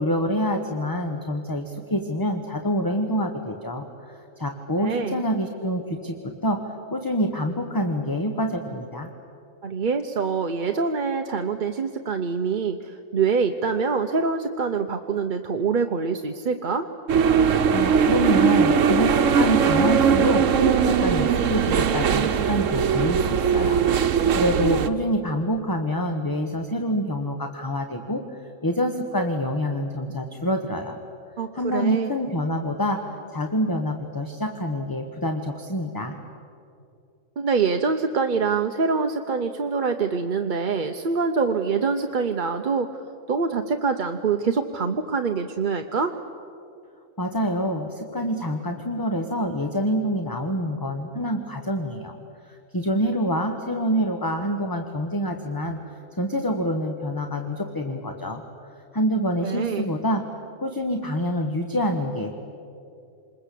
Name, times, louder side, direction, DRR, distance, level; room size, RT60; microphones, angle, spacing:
voice 1, 0.0-9.1 17.7-23.8 24.1-31.0 31.5-33.0 33.3-36.2 47.2-52.2 52.5-55.8 56.2-58.4 58.9-60.2 60.6-62.3, equal, 15° left, 5 dB, 1.2 m, -26 dB
voice 2, 4.8-5.2 9.6-16.9 31.4-32.1 37.4-43.0 43.3-46.1 59.4-59.9, right 5 dB, 45° right, 6 dB, 0.9 m, -25 dB
sound 1, 17.1-24.9, right 7 dB, 80° right, 1.3 m, -20 dB
26.5 x 21.5 x 8.4 m, 2.6 s
omnidirectional pair, 1.3 m